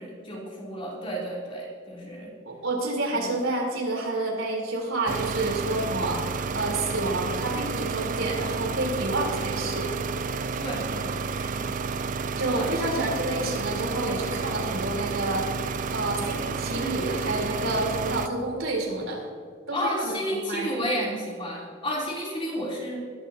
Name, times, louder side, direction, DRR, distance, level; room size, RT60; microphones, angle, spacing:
voice 1, 0.0-2.3 3.1-3.3 10.6-11.7 12.4-12.7 19.7-23.0, equal, 25° left, -4 dB, 3.3 m, -32 dB
voice 2, 2.5-9.9 12.3-15.7 15.9-19.2 19.7-20.7, right 2 dB, 80° right, -1 dB, 3.7 m, -29 dB
sound 1, 5.1-18.3, right 4 dB, 40° right, 0.4 m, -31 dB
20.5 x 11.0 x 2.8 m, 2.2 s
head